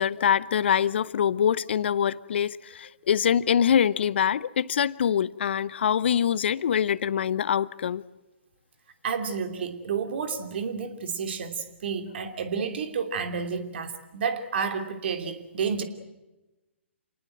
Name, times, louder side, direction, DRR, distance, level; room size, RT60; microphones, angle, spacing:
voice 1, 0.0-8.0, left 8 dB, 60° left, 0.8 m, -24 dB
voice 2, 9.0-15.8, right 6 dB, 55° right, 3.0 m, -30 dB
27.5 x 19.0 x 7.9 m
figure-of-eight pair, 135°, 7 cm